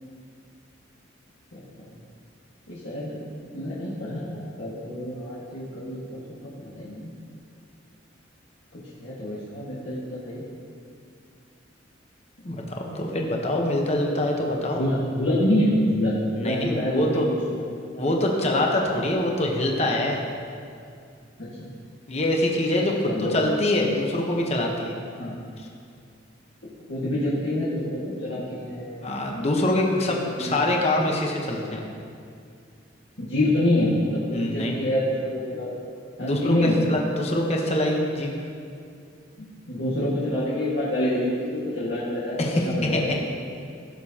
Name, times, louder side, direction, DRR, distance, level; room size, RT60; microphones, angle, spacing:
voice 1, 2.7-3.2 3.5-6.2 6.8-7.1 8.7-10.4 12.4-12.5 14.7-17.4 18.1-18.2 21.4-21.7 23.0-23.3 25.2-25.4 26.9-29.2 30.4-30.6 33.2-35.7 36.2-36.8 39.4-43.2, left 1 dB, 65° left, -9 dB, 1.7 m, -26 dB
voice 2, 12.4-14.8 16.4-17.3 17.9-20.2 22.1-25.0 29.0-31.8 34.3-34.8 36.2-38.3 42.4-43.0, left 1 dB, 35° left, 0 dB, 1.0 m, -24 dB
16.5 x 6.8 x 2.9 m, 2.4 s
head